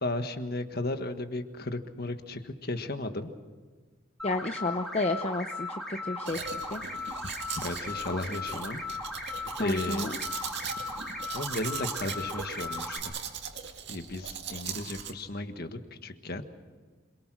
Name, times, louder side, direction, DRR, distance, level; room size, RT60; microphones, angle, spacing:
voice 1, 0.0-3.3 7.5-8.8 9.6-10.1 11.3-13.1 13.9-16.5, left 2 dB, 45° left, 8 dB, 1.5 m, -34 dB
voice 2, 4.2-6.8 9.6-10.1, left 2 dB, 30° left, 7 dB, 0.7 m, -31 dB
sound 1, 4.2-13.0, left 2 dB, ahead, 3.2 m, -37 dB
Domestic sounds home sounds, 6.3-15.1, right 7 dB, 55° right, 2.2 m, -39 dB
27.5 x 22.5 x 6.3 m, 1.4 s
head